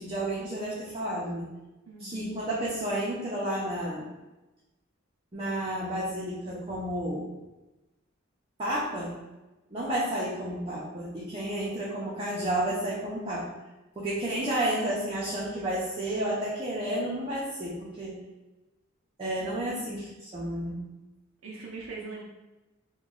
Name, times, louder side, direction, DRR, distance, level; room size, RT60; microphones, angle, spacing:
voice 1, 0.0-1.5 2.0-4.1 5.3-7.3 8.6-9.1 9.7-13.5 14.0-18.2 19.2-20.8, right 1 dB, 25° right, -7 dB, 0.6 m, -31 dB
voice 2, 1.9-2.3 19.4-19.9 21.4-22.2, right 3 dB, 70° right, -4 dB, 0.5 m, -41 dB
3.0 x 2.3 x 3.7 m, 1.1 s
head